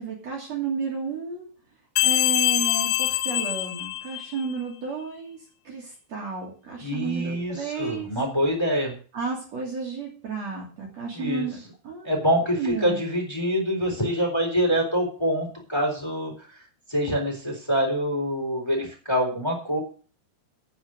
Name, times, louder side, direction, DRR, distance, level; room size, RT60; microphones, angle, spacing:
voice 1, 0.0-1.5 2.0-5.4 5.6-8.1 9.1-12.3 12.6-13.0, right 5 dB, 45° right, -2 dB, 3.6 m, -32 dB
sound 1, 2.0-4.5, left 15 dB, 85° left, 2.9 m, -24 dB
voice 2, 6.8-8.9 11.1-11.5 12.0-16.3 16.9-19.8, equal, 5° left, 1 dB, 4.1 m, -25 dB
9.4 x 8.2 x 7.8 m, 0.39 s
omnidirectional pair, 4.4 m